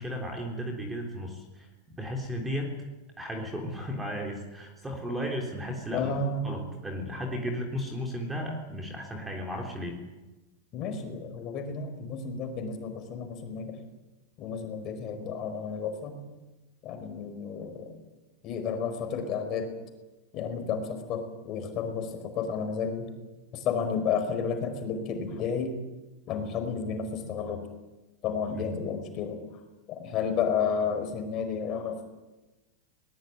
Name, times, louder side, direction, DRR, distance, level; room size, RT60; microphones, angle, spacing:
voice 1, 0.0-1.7 2.0-2.7 3.2-6.1 6.4-10.0 28.5-28.8, equal, 10° right, 2 dB, 3.5 m, -34 dB
voice 2, 5.9-6.5 10.7-13.8 14.4-16.2 16.8-17.9 18.4-19.7 20.3-23.1 23.5-25.7 26.3-27.6 28.2-29.4 29.9-32.1, left 6 dB, 30° left, 5 dB, 4.8 m, -31 dB
21.5 x 20.0 x 9.2 m, 1.1 s
supercardioid pair, 160°, 0 cm